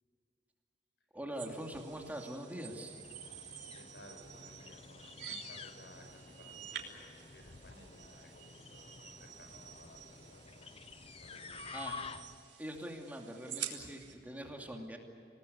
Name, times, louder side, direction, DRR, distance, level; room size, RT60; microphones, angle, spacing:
voice 1, 1.1-3.0 11.7-12.0 12.6-15.0, equal, 10° right, 1 dB, 2.7 m, -43 dB
sound 1, 1.4-14.1, right 9 dB, 85° right, 3.5 m, -49 dB
sound 2, 2.7-12.5, left 5 dB, 35° left, 0.7 m, -50 dB
voice 2, 3.7-10.7 11.2-11.9, left 1 dB, 75° left, 5 dB, 5.3 m, -58 dB
27.5 x 19.0 x 8.2 m, 2.5 s
head